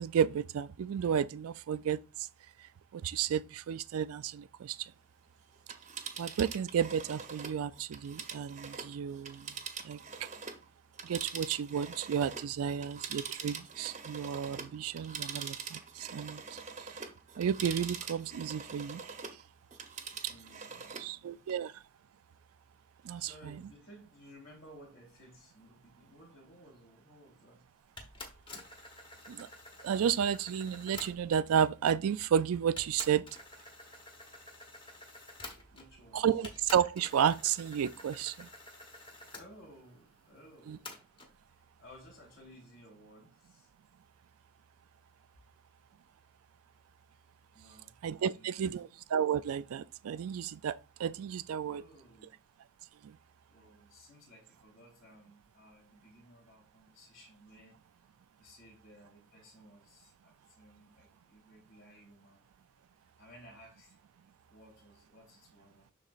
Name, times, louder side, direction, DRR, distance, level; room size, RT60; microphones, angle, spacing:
voice 1, 0.0-2.3 2.6-4.9 6.2-9.5 9.8-10.3 11.0-16.9 17.4-19.2 21.0-21.8 23.0-23.6 29.3-29.5 29.8-33.3 36.1-38.5 40.7-40.8 48.0-51.8 53.0-53.2, right 8 dB, 80° right, 0.3 m, -32 dB
Telephone, 5.6-10.6 10.9-19.4 19.7-21.1 21.5-21.6, right 6 dB, 30° right, 0.8 m, -43 dB
voice 2, 20.1-21.4 23.1-27.6 35.7-36.4 39.3-40.9 41.8-43.7 47.5-48.9 51.6-52.4 53.5-57.8 58.4-62.4 63.2-64.0 64.5-65.9, equal, 60° left, 3.5 m, -57 dB
sound 1, 28.0-31.5 32.3-32.4 32.8-36.1 36.4-39.5 40.9-41.3, left 2 dB, 20° left, 1.1 m, -49 dB
12.0 x 4.1 x 2.5 m
head